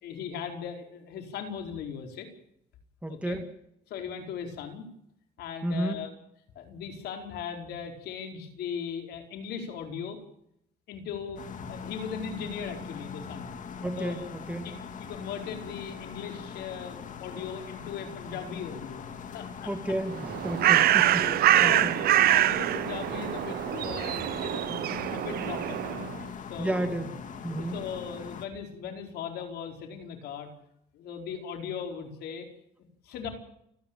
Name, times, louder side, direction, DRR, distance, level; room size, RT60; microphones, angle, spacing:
voice 1, 0.0-2.3 3.1-3.4 3.9-4.9 5.4-6.1 6.5-10.2 10.9-13.5 14.0-14.3 14.6-19.0 19.3-19.9 21.1-26.1 26.5-27.1 27.6-30.5 30.9-32.5 33.0-33.3, left 7 dB, 75° left, 3 dB, 4.8 m, -38 dB
voice 2, 3.0-3.5 5.6-6.0 13.8-14.7 19.6-21.3 21.6-21.9 26.6-27.1 27.4-27.8, right 1 dB, 5° right, 7 dB, 2.1 m, -32 dB
sound 1, 11.4-28.5, left 6 dB, 50° left, 2.3 m, -41 dB
Bird, 20.1-26.1, right 13 dB, 65° right, 0.8 m, -25 dB
29.5 x 10.0 x 9.1 m, 0.74 s
cardioid pair, 110°, 17 cm